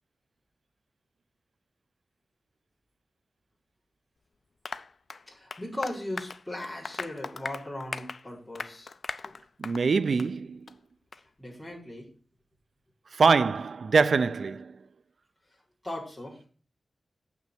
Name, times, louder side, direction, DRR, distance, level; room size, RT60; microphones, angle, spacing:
Applause, 4.7-9.9 10.2-10.3 10.7-10.8 11.1-11.2, left 4 dB, 60° left, 0.5 m, -39 dB
voice 1, 5.3-8.9 9.2-9.3 11.4-12.1 15.8-16.4, left 1 dB, 5° left, 4.5 m, -38 dB
voice 2, 9.6-10.6 13.2-14.7, right 5 dB, 70° right, 0.4 m, -23 dB
7.6 x 6.0 x 7.5 m
wide cardioid pair, 100°, 0 cm